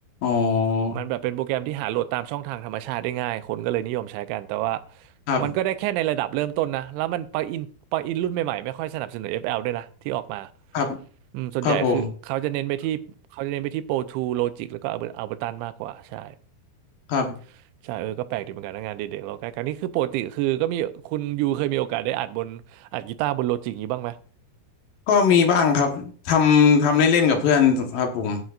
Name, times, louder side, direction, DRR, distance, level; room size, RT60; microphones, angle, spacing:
voice 1, 0.2-1.0 5.3-5.5 10.7-11.0 11.6-12.1 17.1-17.3 25.1-28.4, left 6 dB, 65° left, 2.4 m, -20 dB
voice 2, 0.9-4.8 5.4-10.5 11.3-13.0 13.3-16.4 17.8-24.2, right 14 dB, 90° right, 3.0 m, -28 dB
15.5 x 9.3 x 2.5 m
omnidirectional pair, 5.2 m